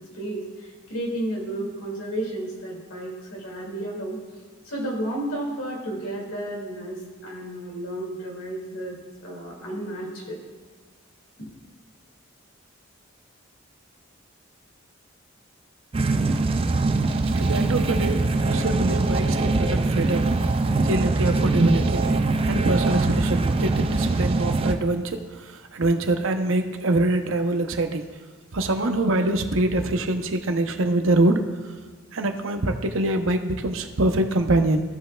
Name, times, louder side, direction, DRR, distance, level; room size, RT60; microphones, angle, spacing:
voice 1, 0.1-0.4 0.9-4.2 4.6-8.9 9.2-10.4, right 1 dB, 90° left, -2 dB, 2.2 m, -32 dB
sound 1, 15.9-24.8, right 3 dB, 25° right, 0.3 m, -23 dB
voice 2, 17.3-20.4 20.7-22.0 22.4-28.0 28.5-31.4 32.1-34.8, right 2 dB, 75° right, 7 dB, 0.7 m, -24 dB
15.0 x 5.6 x 2.3 m, 1.5 s
head